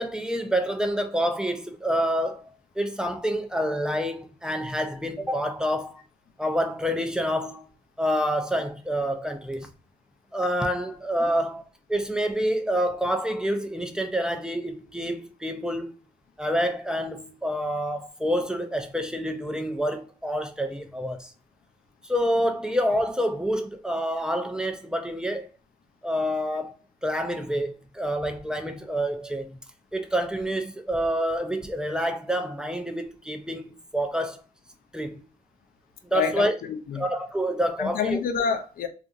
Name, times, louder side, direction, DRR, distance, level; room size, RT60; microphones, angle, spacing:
voice 1, 0.0-2.4 2.8-6.0 6.4-7.6 8.0-9.7 10.3-11.6 11.9-15.9 16.4-21.3 22.0-25.5 26.0-26.7 27.0-29.5 29.9-34.4 34.9-35.2 36.0-36.5 36.9-38.2, equal, 5° right, 0.4 m, -27 dB
voice 2, 36.1-37.0 37.8-38.9, left 6 dB, 85° left, 0.4 m, -28 dB
2.8 x 2.4 x 2.4 m
cardioid pair, 85°, 15 cm